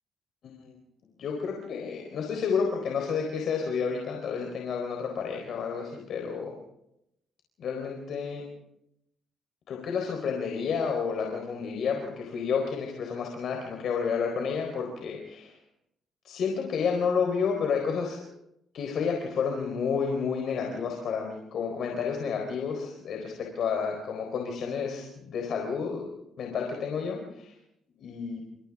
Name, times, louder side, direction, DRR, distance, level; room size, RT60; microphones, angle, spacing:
voice 1, 0.4-0.8 1.2-6.6 7.6-8.5 9.7-15.6 16.2-18.2 18.7-26.1 26.4-27.5 28.0-28.4, left 6 dB, 65° left, 2 dB, 4.1 m, -30 dB
26.5 x 26.5 x 3.7 m, 0.82 s
cardioid pair, 90°, 0 cm